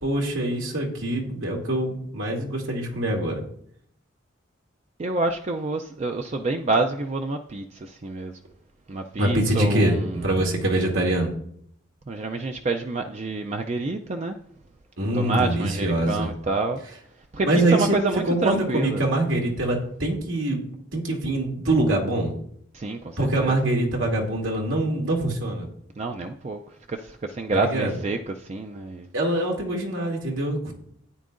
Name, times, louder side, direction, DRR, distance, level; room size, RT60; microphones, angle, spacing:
voice 1, 0.0-3.4 9.2-10.0 10.2-11.3 15.0-16.3 17.4-18.0 18.2-20.6 20.9-22.3 23.2-25.7 27.5-28.0 29.1-30.7, right 1 dB, 85° right, 0 dB, 2.3 m, -24 dB
voice 2, 5.0-8.4 8.9-10.2 12.1-14.4 15.1-16.8 17.3-19.0 22.7-23.6 26.0-26.6 26.9-29.1, right 3 dB, 35° right, 5 dB, 0.4 m, -28 dB
12.5 x 9.4 x 2.5 m, 0.67 s
head